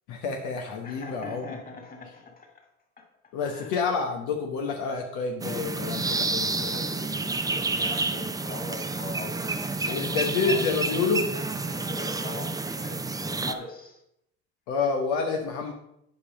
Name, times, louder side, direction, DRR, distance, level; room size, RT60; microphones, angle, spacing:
voice 1, 0.1-1.6 3.3-6.7 9.9-11.3 14.7-15.7, left 5 dB, 75° left, 2 dB, 1.2 m, -28 dB
voice 2, 0.8-2.6 3.0-3.1 3.4-3.7 6.4-11.0 11.6-14.0, left 3 dB, 25° left, 2 dB, 2.6 m, -41 dB
sound 1, 5.4-13.5, right 3 dB, 10° right, 0.5 m, -29 dB
8.5 x 5.2 x 5.1 m, 0.77 s
hypercardioid pair, 75°, 33 cm